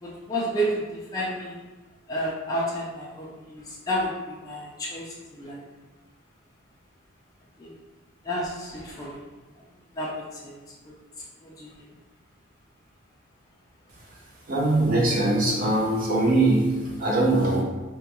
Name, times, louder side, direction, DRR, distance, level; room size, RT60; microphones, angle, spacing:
voice 1, 0.0-1.6 2.1-5.6 7.6-7.7 8.2-9.2 10.0-10.1 10.4-10.5 11.4-11.7, equal, 15° left, -6 dB, 0.4 m, -31 dB
voice 2, 14.5-17.6, right 2 dB, 40° right, -3 dB, 0.6 m, -22 dB
3.5 x 2.2 x 2.9 m, 1.2 s
head